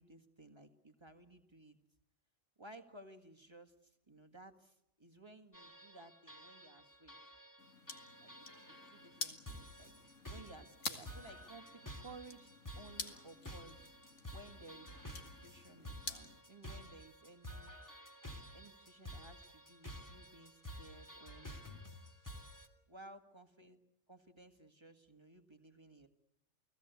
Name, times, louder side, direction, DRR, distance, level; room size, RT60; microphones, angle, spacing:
voice 1, 0.0-1.8 2.6-7.2 8.2-9.9 10.3-12.5 12.8-13.8 14.3-17.7 18.5-21.9 22.9-23.8 24.1-26.1, right 2 dB, 20° right, 6 dB, 1.9 m, -57 dB
sound 1, 5.5-22.7, equal, 15° left, 2.8 m, -52 dB
sound 2, 7.6-16.4, left 4 dB, 70° left, 2.2 m, -49 dB
30.0 x 18.0 x 8.2 m, 0.81 s
omnidirectional pair, 1.3 m